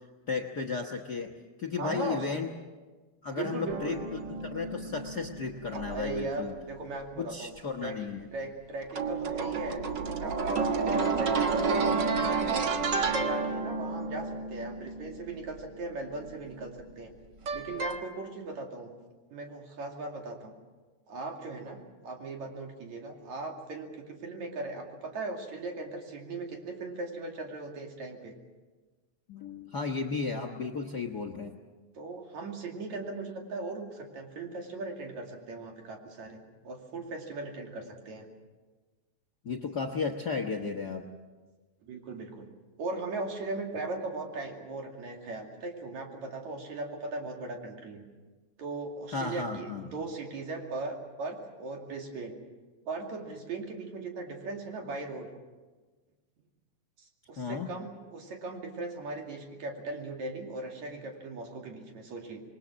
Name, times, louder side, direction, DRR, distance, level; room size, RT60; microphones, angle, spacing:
voice 1, 0.3-1.3 1.6-2.5 3.2-4.0 4.5-6.5 7.2-8.3 29.3-31.6 39.4-41.0 49.1-49.9 57.4-57.7, left 4 dB, 55° left, 5 dB, 1.2 m, -34 dB
voice 2, 1.8-2.3 3.3-4.0 5.9-7.5 7.8-12.7 13.0-17.1 17.5-18.9 19.3-20.5 21.1-28.3 31.9-38.3 41.8-42.5 42.8-48.0 48.6-52.4 52.9-55.3 57.0-62.4, right 3 dB, 70° right, 1 dB, 3.9 m, -38 dB
sound 1, 3.7-6.3 8.9-16.8 17.5-18.0, right 4 dB, 45° right, 1.6 m, -31 dB
27.0 x 21.5 x 6.3 m, 1.3 s
omnidirectional pair, 3.4 m